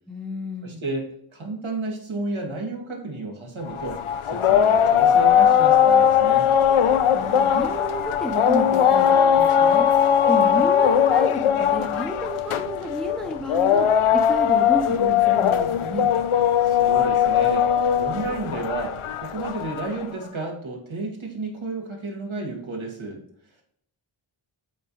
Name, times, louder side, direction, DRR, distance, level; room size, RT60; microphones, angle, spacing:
voice 1, 0.1-0.8 7.1-9.9 10.3-13.9 14.1-16.1, right 1 dB, ahead, 4 dB, 0.8 m, -31 dB
voice 2, 0.6-4.0 4.3-6.5 16.6-23.2, right 3 dB, 75° right, 0 dB, 1.8 m, -32 dB
sound 1, 3.7-20.0, left 8 dB, 85° left, 0.6 m, -19 dB
8.4 x 4.0 x 3.1 m, 0.68 s
wide cardioid pair, 95°, 49 cm